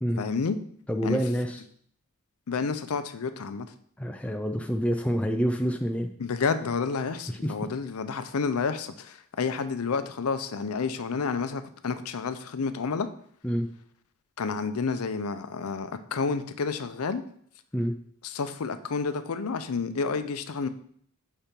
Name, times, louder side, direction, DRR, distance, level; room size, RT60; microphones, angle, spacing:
voice 1, 0.2-0.6 1.0-1.2 2.5-3.7 6.2-13.1 14.4-17.2 18.2-20.7, left 5 dB, 80° left, 11 dB, 0.5 m, -30 dB
voice 2, 0.9-1.6 4.0-6.1 7.3-7.5 13.4-13.7 17.7-18.0, equal, 5° left, 4 dB, 0.4 m, -27 dB
5.8 x 4.3 x 5.2 m, 0.62 s
head